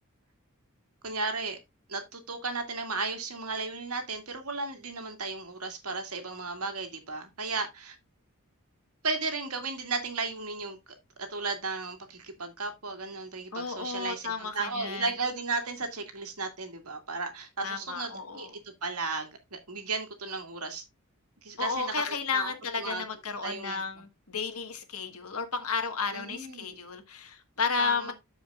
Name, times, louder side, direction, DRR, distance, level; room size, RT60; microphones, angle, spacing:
voice 1, 1.0-1.6 1.9-8.0 9.0-10.8 11.2-18.5 18.8-20.8 21.4-21.9 22.3-23.0 23.4-23.8 26.1-26.8 27.8-28.1, right 3 dB, 80° right, 2.1 m, -34 dB
voice 2, 13.5-15.1 17.6-18.6 21.6-28.1, left 5 dB, 75° left, 1.5 m, -33 dB
13.0 x 5.0 x 2.4 m
head